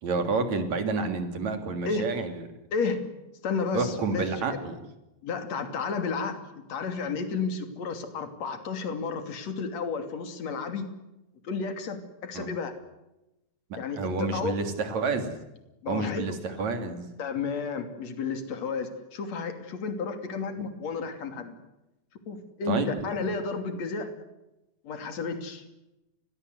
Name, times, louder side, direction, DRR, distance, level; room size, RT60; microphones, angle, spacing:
voice 1, 0.0-2.5 3.7-4.8 12.3-12.5 13.7-15.4 15.9-17.1 22.7-22.9, right 4 dB, 70° right, 7 dB, 4.4 m, -29 dB
voice 2, 2.7-3.2 3.4-4.4 5.2-10.9 11.4-12.7 13.7-14.6 15.8-16.3 17.2-21.6 22.3-24.1 24.8-25.6, left 5 dB, 65° left, 8 dB, 4.0 m, -32 dB
29.5 x 22.5 x 8.0 m, 0.96 s
omnidirectional pair, 3.4 m